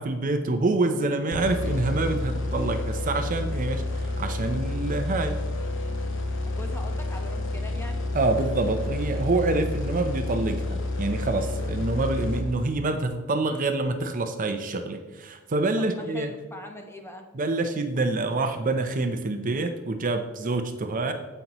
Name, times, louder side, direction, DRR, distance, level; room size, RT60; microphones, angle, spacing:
voice 1, 0.0-5.4 8.1-16.3 17.3-21.1, right 2 dB, 40° right, 7 dB, 0.6 m, -26 dB
sound 1, 1.3-13.0, left 2 dB, 65° left, 1.2 m, -30 dB
voice 2, 6.4-8.1 15.8-17.3, left 1 dB, 10° left, 3 dB, 1.0 m, -41 dB
15.0 x 5.4 x 3.0 m, 1.4 s
head